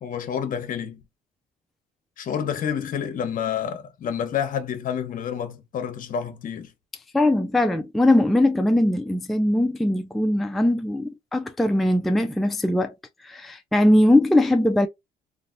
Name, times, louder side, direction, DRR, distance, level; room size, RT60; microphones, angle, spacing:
voice 1, 0.0-1.0 2.2-6.7, left 8 dB, 55° left, 0.9 m, -29 dB
voice 2, 7.1-12.9 13.2-14.9, left 1 dB, ahead, 0.3 m, -20 dB
3.2 x 2.5 x 2.5 m
cardioid pair, 110°, 17 cm